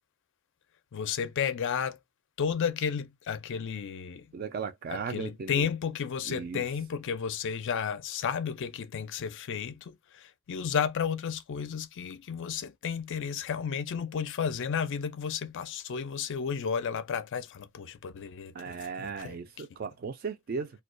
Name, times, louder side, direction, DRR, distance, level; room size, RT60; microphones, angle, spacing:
voice 1, 0.9-2.0 2.4-4.3 4.9-19.6, left 7 dB, 55° left, 0.4 m, -33 dB
voice 2, 4.3-5.7 6.3-6.6 18.5-20.7, right 5 dB, 45° right, 0.4 m, -36 dB
2.2 x 2.2 x 2.5 m
head